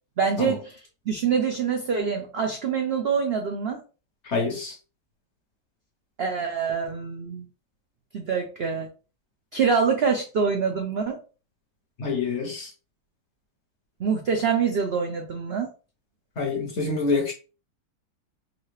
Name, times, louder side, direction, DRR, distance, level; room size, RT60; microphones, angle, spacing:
voice 1, 0.2-0.8 1.1-3.8 6.2-7.4 8.1-8.9 9.5-11.2 14.0-15.7, right 6 dB, 80° right, 0.5 m, -25 dB
voice 2, 4.3-4.7 12.0-12.7 16.4-17.3, left 4 dB, 55° left, 0.9 m, -26 dB
4.0 x 2.7 x 3.1 m
omnidirectional pair, 1.9 m